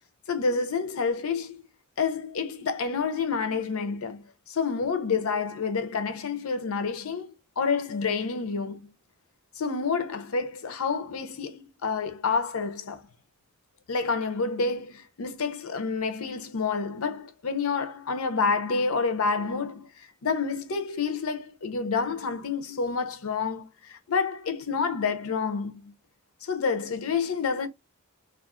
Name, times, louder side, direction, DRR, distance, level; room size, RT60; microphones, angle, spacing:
voice 1, 0.3-1.6 2.0-8.9 9.5-13.0 13.9-25.9 26.4-27.7, left 5 dB, 75° left, 0.6 m, -29 dB
2.4 x 2.3 x 3.5 m
head